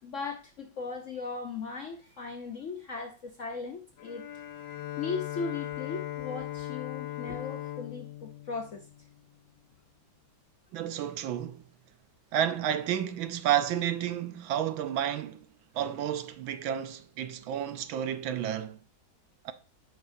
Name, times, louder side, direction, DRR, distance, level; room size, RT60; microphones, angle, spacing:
voice 1, 0.0-4.2 5.0-8.9, left 4 dB, 60° left, 0.8 m, -37 dB
Bowed string instrument, 4.0-9.5, left 13 dB, 85° left, 1.5 m, -39 dB
voice 2, 10.7-11.6 12.3-15.5 15.7-18.8 19.4-19.5, right 10 dB, 80° right, 1.4 m, -31 dB
9.0 x 5.5 x 2.6 m
omnidirectional pair, 2.1 m